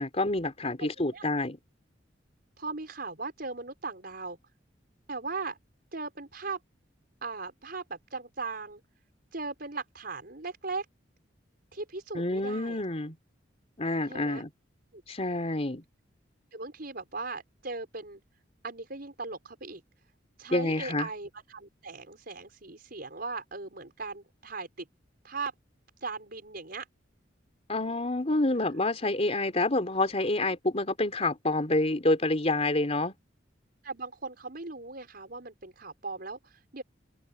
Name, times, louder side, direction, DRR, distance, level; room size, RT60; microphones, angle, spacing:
voice 1, 0.0-1.6 12.1-13.2 13.8-14.5 15.1-15.8 20.5-21.1 27.7-33.1, left 2 dB, 35° left, 3.8 m, -28 dB
voice 2, 2.6-4.4 5.1-5.6 5.9-6.6 7.2-8.8 9.3-10.9 11.7-12.8 14.0-14.4 14.9-15.0 16.5-18.2 18.6-19.8 20.4-24.9 25.2-25.5 26.0-26.9 33.8-36.8, right 3 dB, 55° right, 5.6 m, -38 dB
open air
head